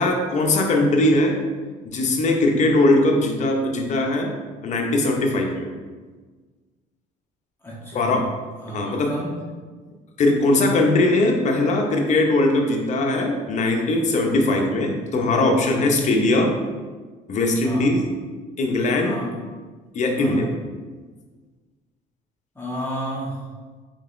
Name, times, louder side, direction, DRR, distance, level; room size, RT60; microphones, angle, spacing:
voice 1, 0.0-1.4 1.8-4.3 4.6-5.7 7.9-8.3 8.7-9.1 10.2-16.6 17.3-18.0 18.6-19.2 19.9-20.5, left 2 dB, 45° left, 2 dB, 0.6 m, -20 dB
voice 2, 7.6-8.2 8.6-9.3 17.6-17.9 19.0-19.4 20.2-20.5 22.5-23.5, equal, 15° left, -6 dB, 1.0 m, -32 dB
3.8 x 3.7 x 2.5 m, 1.4 s
cardioid pair, 110°, 17 cm